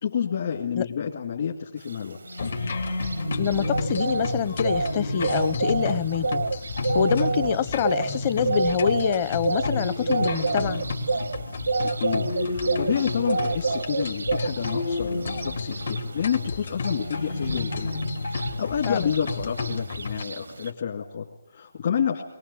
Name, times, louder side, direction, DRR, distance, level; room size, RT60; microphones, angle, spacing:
voice 1, 0.0-2.2 11.8-12.2 12.5-17.9 18.3-22.2, left 7 dB, 50° left, 0 dB, 2.3 m, -29 dB
sound 1, 1.9-20.7, right 4 dB, 85° right, 0.7 m, -30 dB
sound 2, 2.2-13.8 14.6-15.9 16.9-18.4, left 2 dB, 85° left, 3.7 m, -33 dB
sound 3, 2.4-20.2, left 3 dB, 70° left, 2.6 m, -33 dB
voice 2, 3.4-6.4 6.9-10.8 18.9-19.1, left 8 dB, 30° left, 15 dB, 0.8 m, -26 dB
22.5 x 19.5 x 8.6 m, 1.0 s
hypercardioid pair, 160°, 0 cm